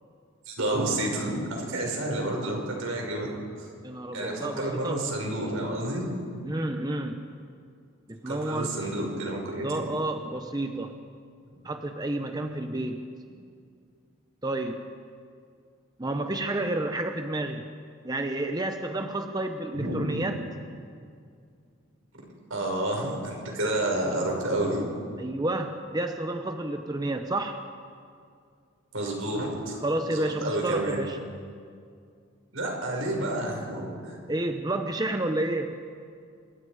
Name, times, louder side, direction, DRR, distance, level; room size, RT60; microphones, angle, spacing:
voice 1, 0.5-3.3 3.6-3.7 4.1-6.2 8.3-9.8 19.7-20.3 22.5-24.9 28.9-29.8 30.1-31.0 32.5-34.1, right 1 dB, 80° right, 0 dB, 5.6 m, -30 dB
voice 2, 3.8-5.0 6.4-7.3 8.1-8.8 9.6-11.0 11.6-13.1 14.4-14.9 16.0-17.7 18.0-20.4 25.2-27.6 29.8-31.2 34.3-35.8, right 2 dB, 20° right, 6 dB, 0.8 m, -30 dB
26.5 x 23.0 x 5.0 m, 2.3 s
head